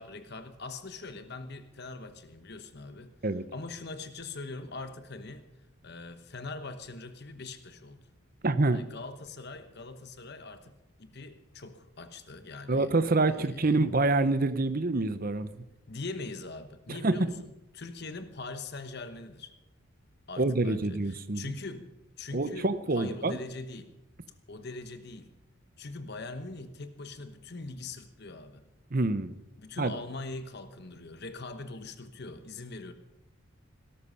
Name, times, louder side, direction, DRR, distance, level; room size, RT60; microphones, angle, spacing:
voice 1, 0.0-3.1 3.5-5.4 5.8-8.1 8.7-12.9 13.3-13.8 15.9-19.5 20.3-22.7 22.9-23.9 24.5-25.3 25.8-28.6 29.6-32.9, left 3 dB, 50° left, 10 dB, 1.1 m, -42 dB
voice 2, 8.4-8.8 12.7-15.6 16.9-17.3 20.4-21.4 22.3-23.4 28.9-29.4 29.8-29.9, right 2 dB, 40° right, 13 dB, 0.8 m, -27 dB
18.0 x 13.0 x 5.6 m, 0.89 s
head